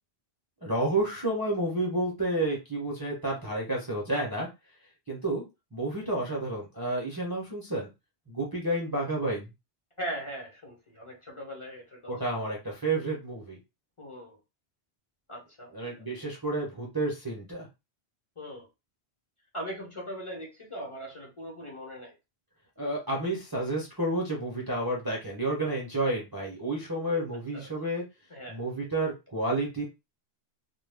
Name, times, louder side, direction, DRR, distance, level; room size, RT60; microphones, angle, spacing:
voice 1, 0.6-4.5 5.1-5.4 5.7-7.9 8.3-9.5 12.1-13.6 15.7-17.7 22.8-28.0 28.5-29.8, right 2 dB, 25° right, -3 dB, 0.7 m, -30 dB
voice 2, 10.0-12.1 14.0-14.4 15.3-16.0 18.4-18.7 19.5-22.1 27.5-27.7 28.3-28.6, equal, 30° left, -2 dB, 0.9 m, -40 dB
2.3 x 2.2 x 3.3 m, 0.25 s
omnidirectional pair, 1.1 m